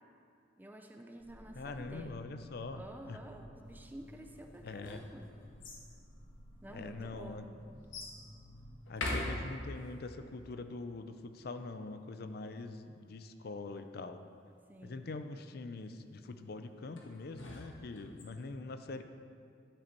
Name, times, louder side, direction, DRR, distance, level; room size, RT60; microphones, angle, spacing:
voice 1, 0.6-2.2 2.8-5.3 6.6-7.5 14.7-15.0, right 1 dB, 10° right, 4 dB, 0.5 m, -50 dB
sound 1, 1.2-10.4, equal, 15° left, 2.0 m, -56 dB
voice 2, 1.5-3.2 4.6-5.0 6.7-7.4 8.9-14.2 14.8-19.0, left 3 dB, 55° left, 9 dB, 0.5 m, -43 dB
sound 2, 4.5-5.9 6.7-6.8 7.9-8.2 8.9-9.9 17.0-18.2, left 1 dB, 85° left, 1.5 m, -41 dB
11.5 x 6.7 x 4.5 m, 2.4 s
head